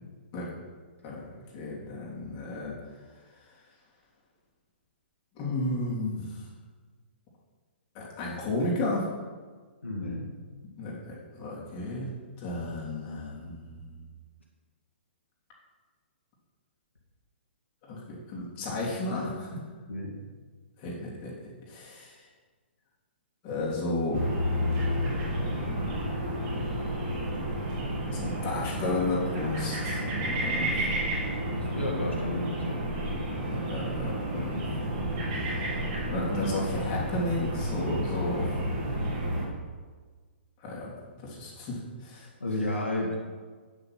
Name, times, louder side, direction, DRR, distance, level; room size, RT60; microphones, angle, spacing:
voice 1, 1.0-2.7 5.4-6.3 7.9-9.0 10.8-12.1 12.4-13.9 17.8-19.6 20.8-21.3 21.7-22.2 23.4-24.2 28.1-30.8 33.4-34.7 36.1-38.6 40.6-40.9 41.2-42.3, left 2 dB, 30° left, -5 dB, 3.3 m, -33 dB
voice 2, 9.8-10.3 19.9-20.2 31.5-32.8 42.4-43.2, left 1 dB, 85° left, -2 dB, 2.3 m, -32 dB
sound 1, 24.1-39.5, equal, 40° right, 2.7 m, -31 dB
9.1 x 6.7 x 6.1 m, 1.5 s
figure-of-eight pair, 120°, 6 cm